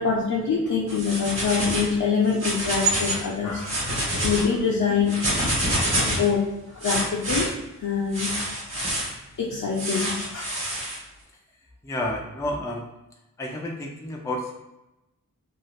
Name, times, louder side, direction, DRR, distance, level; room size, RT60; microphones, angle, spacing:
voice 1, 0.0-5.2 6.0-6.4 6.7-7.5 7.8-8.3 9.4-10.4, left 5 dB, 65° left, -5 dB, 0.6 m, -25 dB
sound 1, 0.9-1.9 2.3-3.2 3.6-4.4 5.1-6.3 6.8-7.5 8.1-9.1 9.8-11.0, right 1 dB, 40° right, 1.2 m, -26 dB
voice 2, 11.8-12.9 13.4-14.5, left 1 dB, 10° left, 0 dB, 0.3 m, -30 dB
2.7 x 2.3 x 3.1 m, 0.94 s
wide cardioid pair, 125°, 33 cm